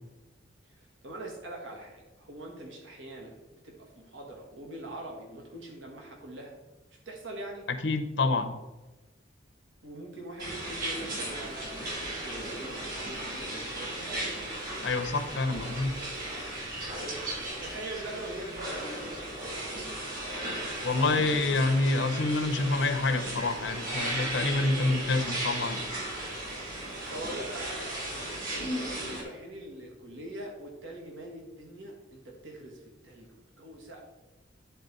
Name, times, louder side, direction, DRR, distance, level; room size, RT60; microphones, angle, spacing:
voice 1, 0.6-6.6 7.0-7.7 9.8-14.1 17.0-17.2 17.6-19.9 26.8-28.0 28.5-34.0, right 1 dB, 75° right, 0 dB, 1.5 m, -43 dB
voice 2, 7.8-8.5 14.8-15.9 20.8-25.8, left 3 dB, 65° left, 8 dB, 0.8 m, -27 dB
sound 1, 10.4-29.2, right 1 dB, 50° right, 2.8 m, -36 dB
10.5 x 4.1 x 4.0 m, 1.1 s
head